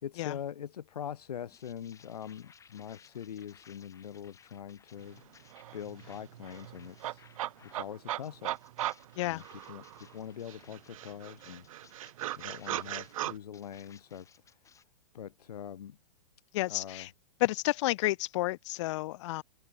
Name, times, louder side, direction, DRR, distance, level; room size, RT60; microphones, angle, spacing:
voice 1, 0.0-5.3 5.7-7.2 7.6-8.6 9.2-9.8 10.1-14.3 15.1-16.0 16.7-17.1, left 9 dB, 75° left, 1.6 m, -43 dB
sound 1, 1.5-7.9 8.2-14.8, left 6 dB, 15° left, 7.5 m, -61 dB
sound 2, 5.2-5.3 5.5-10.1 10.5-13.3, right 14 dB, 60° right, 1.7 m, -38 dB
voice 2, 16.5-17.1 17.4-19.4, left 18 dB, 50° left, 0.9 m, -30 dB
hypercardioid pair, 130°, 20 cm